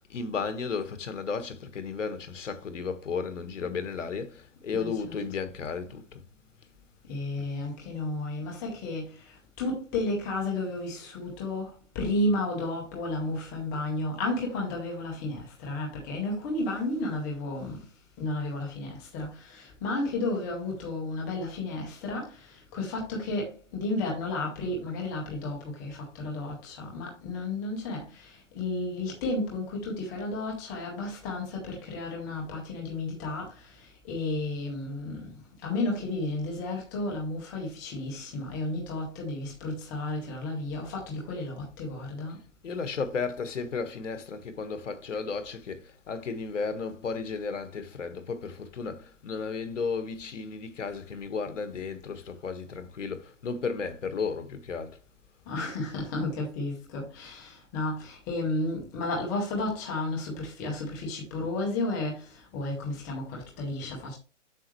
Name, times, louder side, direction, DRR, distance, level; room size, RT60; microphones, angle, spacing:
voice 1, 0.1-6.2 42.6-55.0, left 5 dB, 75° left, 1.5 m, -34 dB
voice 2, 4.7-5.2 7.1-17.8 18.2-35.3 35.6-42.4 55.5-64.2, left 2 dB, 5° left, 0.6 m, -32 dB
7.5 x 6.1 x 3.1 m
hypercardioid pair, 165°, 37 cm